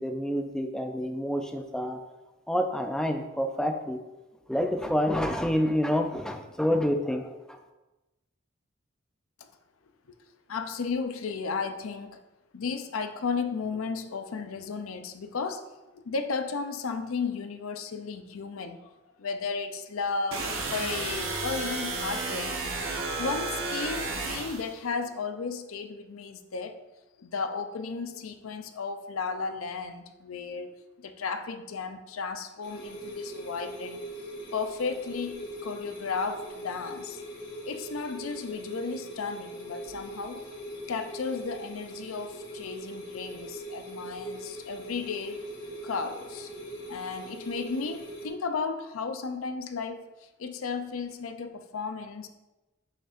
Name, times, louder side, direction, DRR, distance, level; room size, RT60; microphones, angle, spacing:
voice 1, 0.0-2.0 2.5-4.0 4.5-7.6, equal, 5° left, 5 dB, 0.4 m, -28 dB
voice 2, 10.5-12.2 12.5-15.7 15.9-18.8 19.2-22.5 23.2-26.8 27.2-30.7 31.0-34.0 34.5-37.2 37.6-40.4 40.9-45.4 45.8-46.5 46.9-52.3, left 5 dB, 80° left, 8 dB, 0.5 m, -34 dB
sound 1, 20.3-24.7, right 3 dB, 75° right, 1.1 m, -32 dB
sound 2, 32.6-48.3, right 1 dB, 55° left, 1.3 m, -41 dB
6.5 x 6.4 x 2.5 m, 1.1 s
head